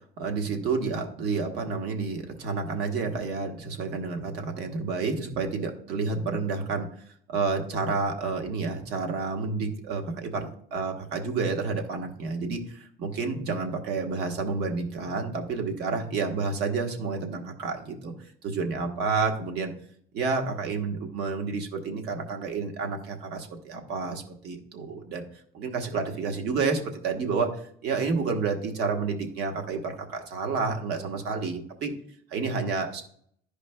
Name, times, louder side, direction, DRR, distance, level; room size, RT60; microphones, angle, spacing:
voice 1, 0.2-6.9 7.3-18.1 18.4-19.7 20.1-25.2 25.5-27.5 27.8-31.9 32.3-33.0, right 4 dB, 70° right, 4 dB, 1.2 m, -30 dB
11.5 x 5.0 x 2.2 m, 0.63 s
cardioid pair, 150°, 18 cm